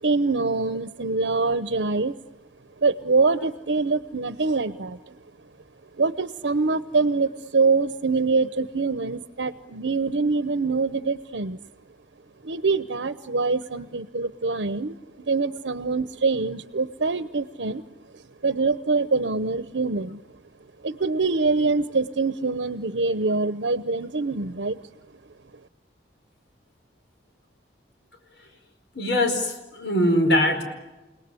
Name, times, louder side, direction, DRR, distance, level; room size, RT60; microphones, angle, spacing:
voice 1, 0.0-2.2 2.8-5.2 6.0-11.6 12.4-17.8 18.1-20.2 20.8-24.8, right 3 dB, 85° right, 12 dB, 0.8 m, -24 dB
voice 2, 28.9-30.6, left 1 dB, 75° left, 5 dB, 4.8 m, -22 dB
29.5 x 19.0 x 9.7 m, 1.1 s
head